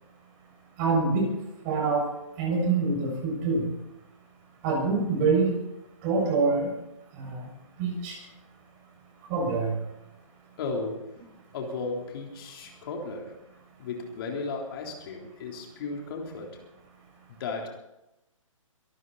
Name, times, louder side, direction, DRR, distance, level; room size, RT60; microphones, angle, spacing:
voice 1, 0.8-1.3 1.6-2.1 2.4-3.7 4.6-5.5 6.0-6.7 7.2-7.5 7.8-8.1 9.3-9.8, right 4 dB, 30° right, 0 dB, 6.6 m, -25 dB
voice 2, 10.6-11.2 11.5-13.4 13.8-16.6 17.4-17.7, left 3 dB, 45° left, 0 dB, 3.7 m, -35 dB
23.5 x 13.5 x 4.2 m, 0.91 s
hypercardioid pair, 145°, 18 cm